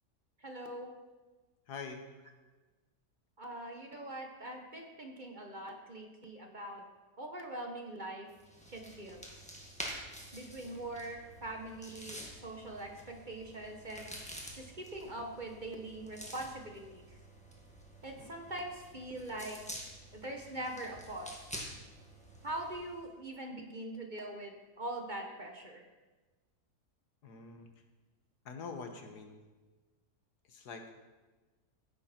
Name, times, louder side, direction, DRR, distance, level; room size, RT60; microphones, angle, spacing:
voice 1, 0.4-0.9 3.4-6.8 7.2-8.3 8.7-9.2 10.3-14.1 14.6-17.2 18.0-19.6 20.1-21.5 22.4-25.8, right 1 dB, 30° right, 3 dB, 1.4 m, -42 dB
voice 2, 1.7-2.0 18.2-18.4 27.2-27.7 28.5-29.4 30.5-30.9, left 5 dB, 80° left, 5 dB, 1.9 m, -45 dB
sound 1, 8.4-23.0, equal, 5° left, 2.1 m, -49 dB
15.0 x 10.5 x 4.5 m, 1.2 s
omnidirectional pair, 1.7 m